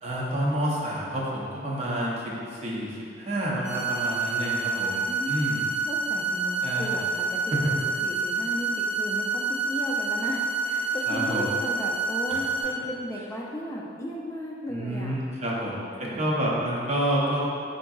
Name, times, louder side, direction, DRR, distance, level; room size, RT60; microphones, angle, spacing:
voice 1, 0.0-5.6 6.6-7.0 7.5-7.7 11.1-11.5 12.3-12.4 14.7-17.4, right 1 dB, 35° right, -5 dB, 0.5 m, -29 dB
sound 1, 3.6-12.6, right 3 dB, 5° right, 1.1 m, -28 dB
voice 2, 5.9-7.7 8.0-15.2 16.0-16.3, equal, 15° left, -3 dB, 0.3 m, -35 dB
3.7 x 3.5 x 2.3 m, 2.5 s
head